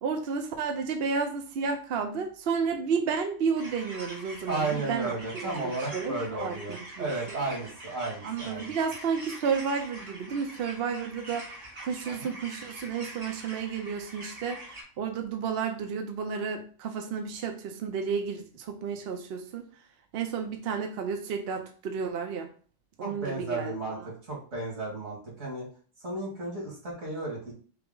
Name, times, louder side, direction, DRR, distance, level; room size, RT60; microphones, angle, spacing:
voice 1, 0.0-6.6 7.0-7.4 8.2-11.5 11.8-14.6 15.0-19.6 20.1-22.5 23.0-23.8, right 6 dB, 60° right, 5 dB, 0.8 m, -32 dB
sound 1, 3.6-14.8, right 1 dB, 35° right, 1.1 m, -44 dB
voice 2, 4.5-8.7 12.0-12.3 23.0-25.7 26.0-27.5, right 2 dB, 90° right, -3 dB, 2.2 m, -34 dB
5.9 x 2.1 x 3.7 m, 0.41 s
omnidirectional pair, 1.3 m